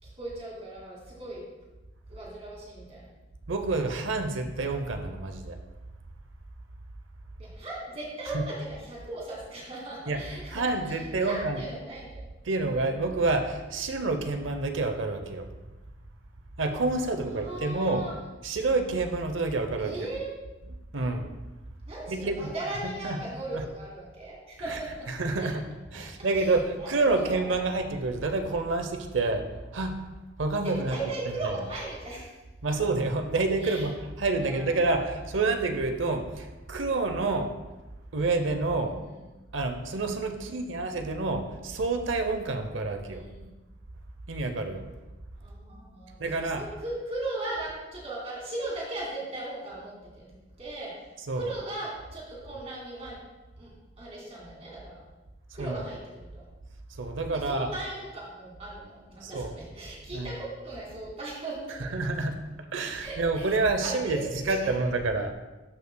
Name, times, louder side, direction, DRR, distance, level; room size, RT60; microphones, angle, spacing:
voice 1, 0.0-1.4 2.1-3.1 7.4-12.2 17.2-18.1 19.8-20.3 21.8-25.1 25.4-25.5 26.3-27.6 30.6-32.3 32.7-32.8 33.6-33.9 34.4-35.3 38.9-39.2 40.3-40.8 43.0-43.5 45.4-46.2 46.6-50.3 50.6-53.2 53.6-55.0 55.5-56.4 57.3-62.0 63.0-64.7, right 2 dB, 35° right, -4 dB, 2.4 m, -38 dB
voice 2, 3.5-5.6 8.2-8.4 10.1-11.7 12.4-15.5 16.6-18.0 18.4-20.1 20.6-21.4 22.1-22.5 22.8-23.2 23.5-23.6 24.6-25.6 25.9-29.5 29.7-30.0 30.4-31.0 31.2-31.7 32.6-37.5 38.1-38.9 39.5-43.2 44.3-44.9 46.2-46.7 51.2-51.6 55.6-55.8 57.0-57.7 59.2-59.6 60.1-60.3 61.7-62.4 62.7-65.3, right 3 dB, 85° right, 6 dB, 0.7 m, -28 dB
12.5 x 5.6 x 2.2 m, 1.1 s
head